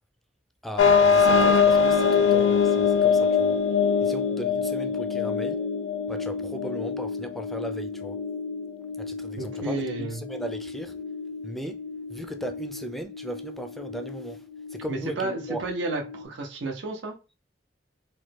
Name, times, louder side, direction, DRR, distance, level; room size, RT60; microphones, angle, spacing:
voice 1, 0.6-3.6 4.0-5.6 6.1-8.2 9.0-11.0 11.4-11.8 12.1-15.6, right 1 dB, ahead, 0.3 m, -37 dB
sound 1, 0.8-16.2, left 6 dB, 85° left, 0.4 m, -25 dB
voice 2, 9.4-10.2 14.9-17.1, right 2 dB, 80° right, 0.6 m, -32 dB
3.0 x 2.2 x 3.2 m
head